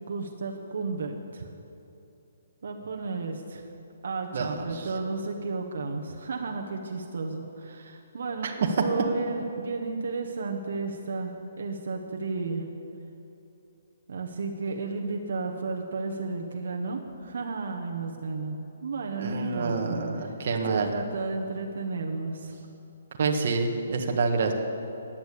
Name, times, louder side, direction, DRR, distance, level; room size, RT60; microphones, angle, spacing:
voice 1, 0.1-1.5 2.6-3.7 4.0-12.7 14.1-20.3 20.7-22.7, right 4 dB, 55° right, 2 dB, 1.3 m, -33 dB
voice 2, 4.3-4.7 8.4-8.5 19.2-20.9 23.2-24.5, right 4 dB, 40° right, 2 dB, 1.5 m, -27 dB
15.5 x 10.5 x 8.5 m, 2.8 s
hypercardioid pair, 180°, 0 cm